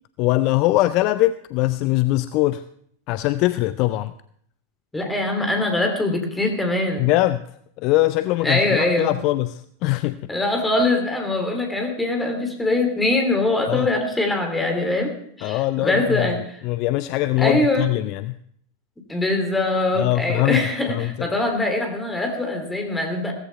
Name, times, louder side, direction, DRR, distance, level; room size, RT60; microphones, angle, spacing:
voice 1, 0.2-2.6 3.1-4.1 7.0-7.4 7.8-10.2 13.7-13.9 15.4-16.3 16.6-18.4 20.0-21.3, left 17 dB, 40° left, 14 dB, 0.4 m, -22 dB
voice 2, 4.9-7.1 8.4-9.1 10.3-15.1 15.4-16.4 17.4-17.9 19.1-23.3, left 2 dB, 10° left, 3 dB, 3.0 m, -22 dB
16.5 x 15.0 x 3.5 m, 0.67 s
figure-of-eight pair, 90°, 0 cm